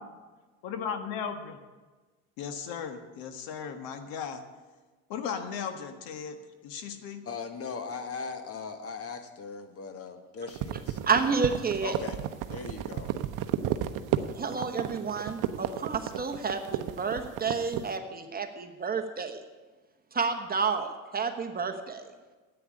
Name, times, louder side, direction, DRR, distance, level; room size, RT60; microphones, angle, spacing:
voice 1, 0.6-1.6 2.4-4.4 5.1-7.2, left 7 dB, 60° left, 7 dB, 1.5 m, -36 dB
voice 2, 7.2-11.0 11.8-12.2 12.5-13.1, left 5 dB, 35° left, 8 dB, 1.6 m, -39 dB
sound 1, 10.5-17.9, right 12 dB, 50° right, 0.9 m, -32 dB
voice 3, 11.0-11.9 14.3-19.4 20.1-22.1, right 5 dB, 20° right, 6 dB, 1.2 m, -30 dB
9.7 x 8.6 x 9.8 m, 1.3 s
supercardioid pair, 100°, 40 cm